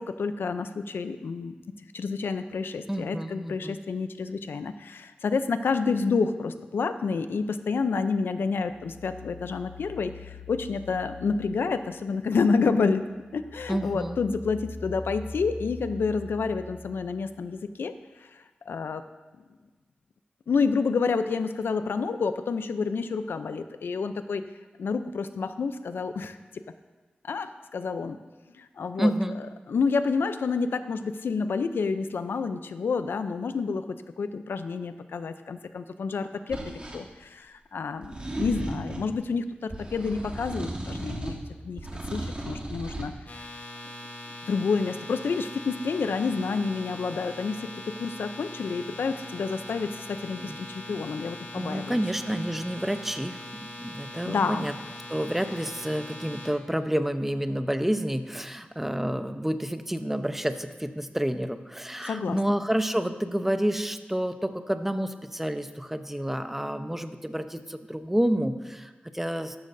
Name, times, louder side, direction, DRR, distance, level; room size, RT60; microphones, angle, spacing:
voice 1, 0.0-1.5 1.9-13.1 13.3-18.0 18.2-19.0 20.5-24.4 24.8-26.6 27.2-28.2 28.6-29.1 29.7-41.4 41.6-41.8 42.1-43.1 44.5-52.0 54.3-54.7 62.0-62.4, left 4 dB, 85° left, 10 dB, 0.5 m, -29 dB
voice 2, 2.9-3.8 13.7-14.2 29.0-29.4 50.4-50.6 51.5-53.4 53.8-54.7 55.1-69.6, right 1 dB, 10° right, 8 dB, 0.8 m, -29 dB
sound 1, 8.6-12.5 12.9-17.4, left 3 dB, 40° left, 2.9 m, -43 dB
sound 2, 36.5-37.0 38.0-39.1 39.7-41.4 41.8-43.1, right 1 dB, 30° right, 2.7 m, -35 dB
sound 3, 43.3-56.5, left 1 dB, 60° left, 2.7 m, -41 dB
13.5 x 13.0 x 2.7 m, 1.3 s
cardioid pair, 60°, 4 cm